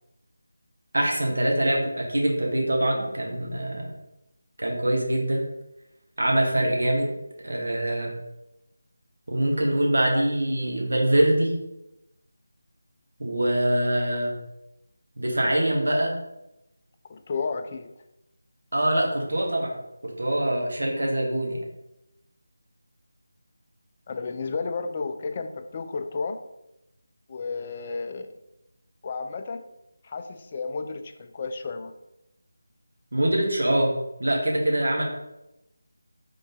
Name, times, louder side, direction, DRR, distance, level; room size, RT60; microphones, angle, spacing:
voice 1, 0.9-3.9 4.6-5.5 6.2-7.1 7.4-8.2 9.3-11.5 13.2-14.3 15.2-16.2 18.7-19.7 20.0-21.7 33.1-33.9 34.2-35.0, right 1 dB, 60° right, -1 dB, 1.3 m, -24 dB
voice 2, 17.1-17.9 24.1-26.4 27.3-28.3 29.0-29.6 30.0-31.9, left 4 dB, 25° left, 7 dB, 0.3 m, -32 dB
3.7 x 3.6 x 3.6 m, 0.90 s
figure-of-eight pair, 160°, 0 cm